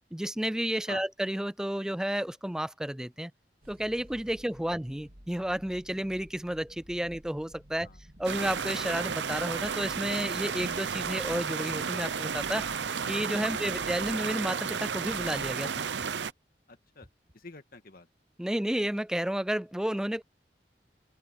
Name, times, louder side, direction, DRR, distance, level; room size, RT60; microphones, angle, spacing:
voice 1, 0.1-3.3 3.7-7.9 8.2-12.7 13.1-15.9 18.4-20.2, right 1 dB, 5° right, 0.3 m, -31 dB
sound 1, 3.6-16.1, equal, 55° right, 4.2 m, -54 dB
sound 2, 8.2-16.3, right 6 dB, 85° right, 0.8 m, -33 dB
sound 3, 10.6-11.0 11.7-12.2 12.8-13.3 13.9-14.2 14.9-15.3 16.0-16.3 17.0-17.4, equal, 25° right, 5.5 m, -56 dB
voice 2, 13.5-13.8 16.7-17.1 17.3-18.1, left 3 dB, 55° left, 1.9 m, -47 dB
head